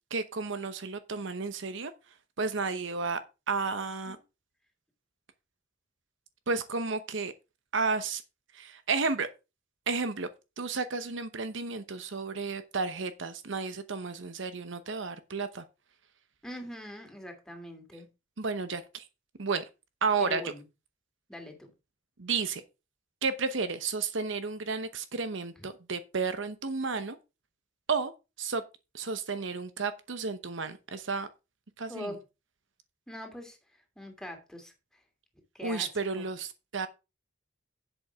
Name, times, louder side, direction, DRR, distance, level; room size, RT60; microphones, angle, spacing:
voice 1, 0.1-1.9 2.4-3.2 3.5-4.2 6.5-7.3 7.7-8.2 8.5-9.3 9.9-10.3 10.6-15.6 18.4-19.0 19.4-19.6 20.0-20.5 22.2-22.6 23.2-27.2 27.9-28.1 28.4-28.6 28.9-31.3 31.8-32.1 35.6-36.9, right 4 dB, 70° right, 0.9 m, -32 dB
voice 2, 16.4-18.1 20.2-20.6 21.3-21.7 25.6-25.7 31.9-32.2 33.1-34.7 35.5-35.9 36.1-36.2, equal, 5° left, 2.7 m, -42 dB
11.0 x 7.9 x 3.6 m
head